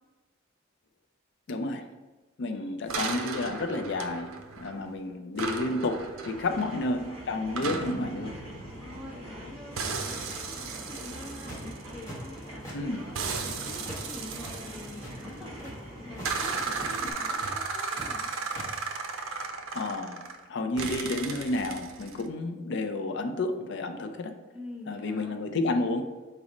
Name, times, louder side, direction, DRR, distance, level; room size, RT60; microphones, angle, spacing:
voice 1, 1.5-1.9 2.4-8.3 12.7-13.0 19.7-24.4 24.9-26.0, left 2 dB, 60° left, 6 dB, 0.4 m, -31 dB
sound 1, 2.9-4.9 5.4-9.4 9.8-12.5 13.1-15.6 16.2-20.4 20.8-22.2, right 4 dB, 90° right, 0.4 m, -35 dB
sound 2, 6.1-17.1, equal, 30° right, 1.0 m, -43 dB
voice 2, 6.6-7.1 8.8-15.8 16.0-18.3 24.5-25.4, left 2 dB, 5° right, -4 dB, 0.7 m, -46 dB
sound 3, 11.4-11.7 12.0-12.8 13.0-14.0 14.3-15.7 16.1-16.3 16.6-16.9 17.4-18.1 18.3-18.7, right 1 dB, 15° left, 1.0 m, -42 dB
4.9 x 2.0 x 4.0 m, 1.2 s
head